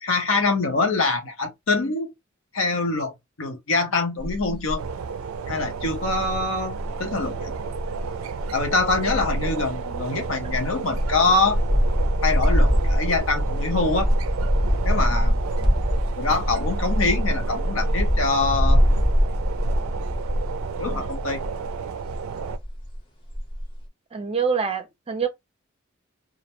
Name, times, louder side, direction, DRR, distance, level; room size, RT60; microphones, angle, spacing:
voice 1, 0.0-2.1 2.5-3.1 3.4-4.8 5.5-7.5 8.5-11.6 12.2-14.1 14.8-15.4 16.2-18.8 20.8-21.5, left 3 dB, 75° left, 0.8 m, -24 dB
sound 1, 4.2-4.9 5.4-5.5 5.8-21.8 22.0-23.0 23.3-23.6, equal, 25° left, 0.8 m, -24 dB
sound 2, 4.8-22.6, right 6 dB, 85° right, 0.3 m, -33 dB
voice 2, 24.1-25.3, right 6 dB, 30° right, 0.5 m, -25 dB
2.5 x 2.1 x 2.9 m
head